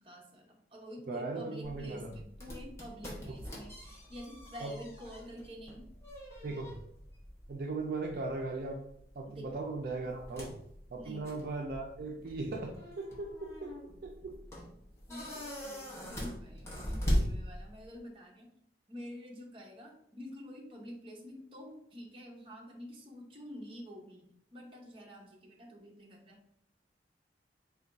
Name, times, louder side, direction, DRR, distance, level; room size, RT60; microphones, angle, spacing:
voice 1, 0.0-5.9 9.3-9.5 11.0-11.3 12.3-12.4 15.1-18.5 18.9-26.4, equal, 30° right, -1 dB, 0.7 m, -48 dB
voice 2, 1.1-2.1 4.6-4.7 6.4-6.8 7.5-8.8 9.2-10.5 10.9-13.7 14.0-14.1, right 3 dB, 55° right, 0 dB, 0.4 m, -38 dB
sound 1, 1.6-18.0, equal, 15° left, 0.7 m, -40 dB
3.4 x 2.2 x 3.9 m, 0.70 s
head